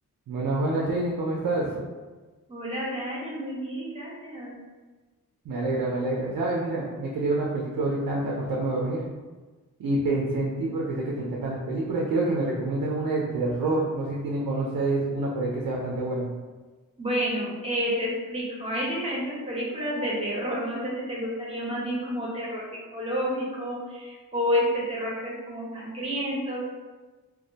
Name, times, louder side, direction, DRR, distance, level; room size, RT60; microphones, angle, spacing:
voice 1, 0.3-1.8 5.4-9.0 9.8-16.3, right 2 dB, 80° right, -3 dB, 0.5 m, -27 dB
voice 2, 2.5-4.6 17.0-26.7, equal, 15° right, -6 dB, 0.9 m, -30 dB
2.2 x 2.1 x 2.7 m, 1.3 s
cardioid pair, 65°, 35 cm